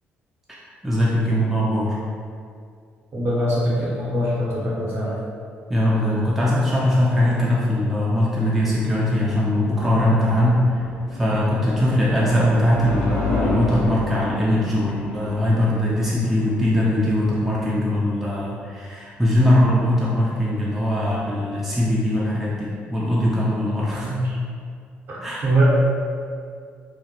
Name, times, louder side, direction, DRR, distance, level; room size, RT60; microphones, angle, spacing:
voice 1, 0.8-2.0 5.7-10.8 11.1-24.1 25.2-25.5, left 1 dB, 5° right, -7 dB, 0.5 m, -21 dB
voice 2, 3.1-5.2 24.0-24.2 25.4-25.6, right 1 dB, 45° right, -7 dB, 0.9 m, -22 dB
sound 1, 8.8-17.7, left 2 dB, 65° left, 0.4 m, -31 dB
2.1 x 2.0 x 2.9 m, 2.3 s
figure-of-eight pair, 45°, 6 cm